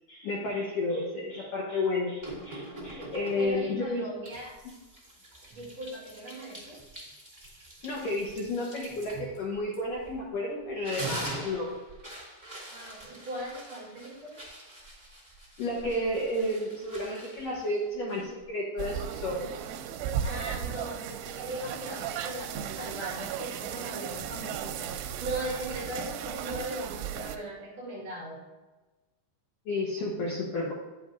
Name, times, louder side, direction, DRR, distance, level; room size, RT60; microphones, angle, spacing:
voice 1, 0.1-4.0 7.8-11.7 15.6-19.5 29.7-30.7, left 2 dB, 65° left, -5 dB, 2.1 m, -31 dB
sound 1, 2.2-3.7 4.2-10.3 10.6-18.5, right 1 dB, 20° right, 0.5 m, -44 dB
voice 2, 3.0-4.6 5.5-6.8 12.7-14.4 16.4-16.5 17.5-17.6 20.2-28.4, right 1 dB, 50° right, -5 dB, 2.0 m, -39 dB
sound 2, 18.8-27.4, right 8 dB, 85° right, 2.9 m, -35 dB
9.9 x 7.8 x 2.7 m, 1.2 s
omnidirectional pair, 5.5 m